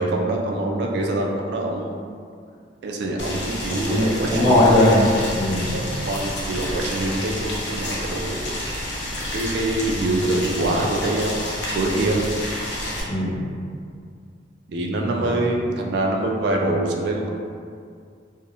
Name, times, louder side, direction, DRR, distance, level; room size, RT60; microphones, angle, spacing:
voice 1, 0.0-2.0 2.8-4.6 5.7-8.5 9.3-11.4 11.8-12.2 14.7-17.3, right 2 dB, 60° right, 0 dB, 0.3 m, -24 dB
Boiling, 3.2-13.0, left 1 dB, 65° left, 0.5 m, -29 dB
voice 2, 3.9-5.8 13.0-13.4 15.2-15.3, left 1 dB, 25° left, -14 dB, 1.1 m, -19 dB
2.7 x 2.0 x 2.5 m, 2.2 s
head